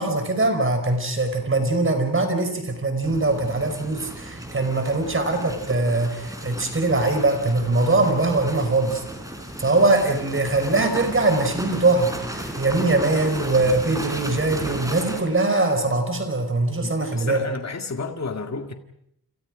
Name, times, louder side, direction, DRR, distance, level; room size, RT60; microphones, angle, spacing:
voice 1, 0.0-9.0 9.6-17.4, right 2 dB, 30° right, 5.0 m, -22 dB
sound 1, 3.0-15.2, right 1 dB, 10° right, 4.4 m, -35 dB
voice 2, 16.8-18.7, left 4 dB, 40° left, 2.1 m, -31 dB
29.5 x 27.5 x 5.1 m
wide cardioid pair, 135°, 40 cm